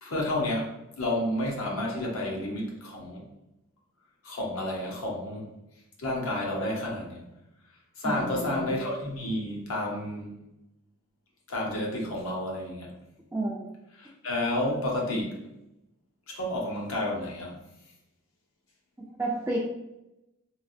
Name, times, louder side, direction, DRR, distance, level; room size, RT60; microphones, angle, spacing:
voice 1, 0.0-3.3 4.2-5.5 6.0-7.3 8.0-10.4 11.5-12.9 14.0-15.5 16.3-17.6, left 1 dB, 70° left, -2 dB, 0.8 m, -31 dB
voice 2, 8.0-8.9 13.3-13.7 19.2-19.6, right 2 dB, 10° right, -4 dB, 0.3 m, -31 dB
3.2 x 2.4 x 2.6 m, 0.90 s
head